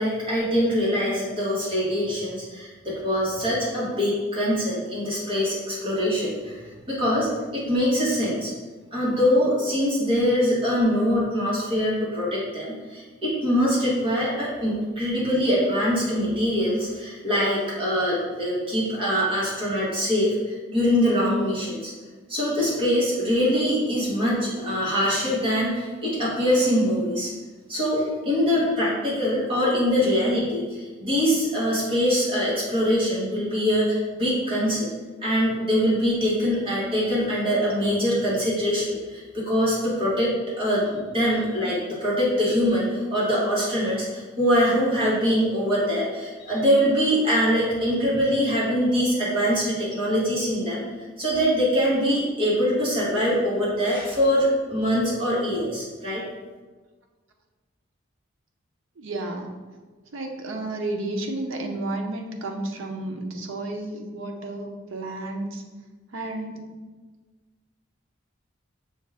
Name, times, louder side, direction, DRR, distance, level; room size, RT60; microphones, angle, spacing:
voice 1, 0.0-8.5 8.9-21.9 22.3-27.3 27.7-34.9 35.2-50.8 51.2-56.2, equal, 25° right, -7 dB, 1.4 m, -23 dB
voice 2, 59.0-59.6 60.1-65.6 66.1-66.7, right 2 dB, 70° right, 2 dB, 0.6 m, -32 dB
6.2 x 2.4 x 3.4 m, 1.3 s
head